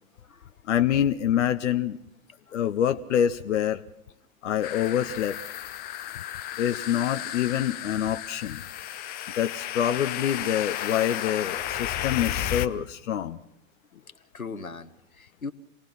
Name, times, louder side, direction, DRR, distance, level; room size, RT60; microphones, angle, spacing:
voice 1, 0.1-0.5 2.5-2.6 14.0-15.5, left 4 dB, 85° left, 11 dB, 1.3 m, -40 dB
voice 2, 0.7-2.0 2.5-3.8 4.4-5.4 6.6-8.6 9.3-13.4, left 10 dB, 60° left, 11 dB, 0.8 m, -26 dB
sound 1, 4.6-12.7, left 12 dB, 20° left, 0.7 m, -33 dB
26.5 x 19.0 x 5.8 m, 0.82 s
figure-of-eight pair, 100°, 41 cm